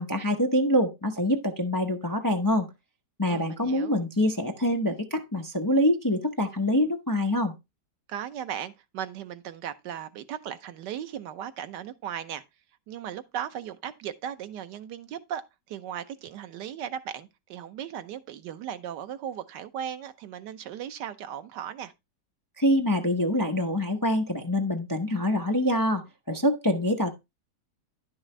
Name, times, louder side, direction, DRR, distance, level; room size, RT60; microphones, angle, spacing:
voice 1, 0.0-2.7 3.2-7.5 22.6-27.1, left 1 dB, 20° left, 0.5 m, -25 dB
voice 2, 3.3-4.0 8.1-12.4 12.9-15.4 15.7-21.9, right 9 dB, 90° right, 1.4 m, -37 dB
11.0 x 6.3 x 3.2 m
omnidirectional pair, 1.8 m